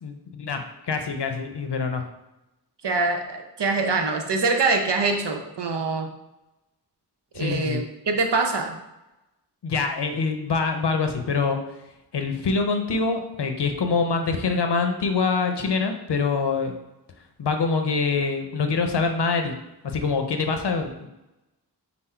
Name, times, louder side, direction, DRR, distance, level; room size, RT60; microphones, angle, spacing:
voice 1, 0.0-2.0 7.4-7.8 9.6-11.6 12.1-16.7 17.4-19.5 19.8-21.1, left 4 dB, 80° left, 5 dB, 0.6 m, -25 dB
voice 2, 2.8-6.1 7.3-8.8, right 3 dB, 85° right, 4 dB, 0.7 m, -24 dB
5.7 x 2.0 x 4.3 m, 0.94 s
wide cardioid pair, 40°, 41 cm